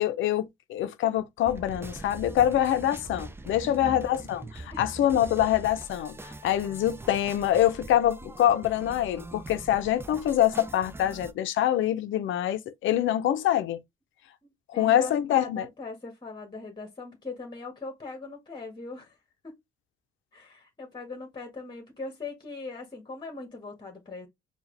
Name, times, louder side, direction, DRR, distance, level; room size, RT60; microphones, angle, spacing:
voice 1, 0.0-13.8 14.7-15.7, left 11 dB, 75° left, 0.6 m, -25 dB
sound 1, 1.5-11.3, right 2 dB, 10° right, 0.5 m, -43 dB
voice 2, 3.6-4.0 4.7-4.8 14.4-19.2 19.4-19.6 20.3-24.3, left 3 dB, 20° left, 1.7 m, -40 dB
4.6 x 2.3 x 3.3 m
cardioid pair, 90°, 20 cm